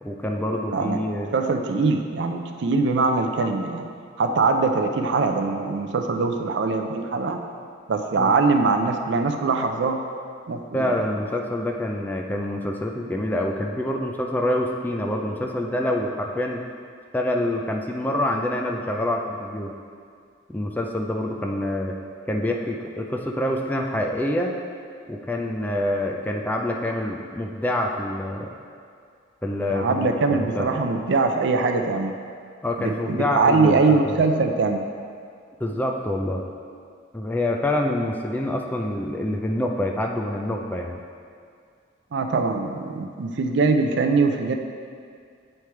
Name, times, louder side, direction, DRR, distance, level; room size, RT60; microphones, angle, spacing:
voice 1, 0.0-1.3 8.2-8.4 10.7-16.7 17.1-19.7 20.5-22.0 22.3-24.5 25.1-28.6 29.4-30.7 32.6-34.2 35.6-36.4 37.1-41.0, left 1 dB, 10° left, 1 dB, 0.3 m, -26 dB
voice 2, 0.7-1.0 1.3-3.9 4.2-7.4 7.9-10.0 10.5-10.9 29.7-32.1 32.8-34.9 42.1-44.5, right 4 dB, 60° right, 5 dB, 0.4 m, -22 dB
8.4 x 3.3 x 4.5 m, 2.2 s
head